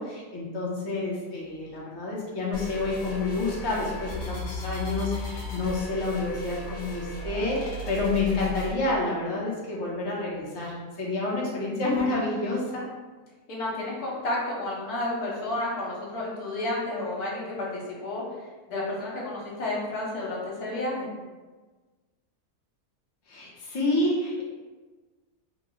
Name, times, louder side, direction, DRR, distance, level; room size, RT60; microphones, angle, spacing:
voice 1, 0.0-12.8 23.3-24.4, left 2 dB, 35° left, -5 dB, 0.4 m, -29 dB
sound 1, 2.5-8.7, left 1 dB, 55° left, 1.1 m, -36 dB
voice 2, 13.5-18.2 18.7-21.1, left 2 dB, 85° left, -4 dB, 1.4 m, -31 dB
3.0 x 2.2 x 3.7 m, 1.3 s
omnidirectional pair, 1.6 m